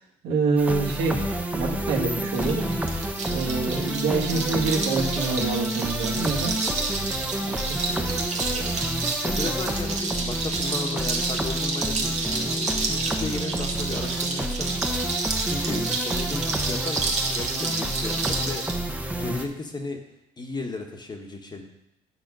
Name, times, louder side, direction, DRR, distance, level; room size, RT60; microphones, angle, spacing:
voice 1, 0.2-1.2 1.5-2.7 3.2-6.5 7.4-8.1, right 4 dB, 80° right, -1 dB, 1.8 m, -26 dB
sound 1, 0.6-19.5, right 1 dB, 10° right, 0.9 m, -29 dB
sound 2, 2.3-18.8, right 3 dB, 40° right, 1.4 m, -30 dB
voice 2, 2.8-3.4 6.7-6.8 8.3-8.8 9.2-14.7 15.4-17.0 17.3-18.6 19.2-20.0 20.4-21.6, left 3 dB, 25° left, 3 dB, 1.2 m, -35 dB
9.1 x 4.2 x 6.2 m, 0.84 s
cardioid pair, 110°, 17 cm